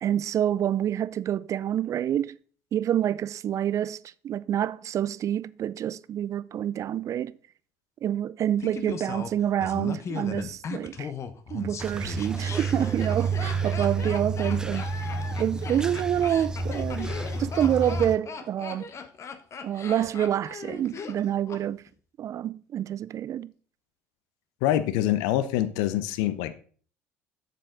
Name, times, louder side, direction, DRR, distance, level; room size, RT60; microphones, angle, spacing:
voice 1, 0.0-2.4 2.7-7.4 8.0-11.1 11.5-14.9 15.4-18.9 19.6-21.8 22.2-23.5, right 10 dB, 45° right, 0.4 m, -27 dB
Laughter, 8.6-21.6 21.9-22.0, left 6 dB, 40° left, 1.1 m, -38 dB
sound 1, 11.8-18.2, right 4 dB, 10° right, 0.7 m, -30 dB
voice 2, 24.6-26.5, left 12 dB, 75° left, 0.6 m, -25 dB
7.5 x 6.7 x 3.9 m
hypercardioid pair, 65°, 7 cm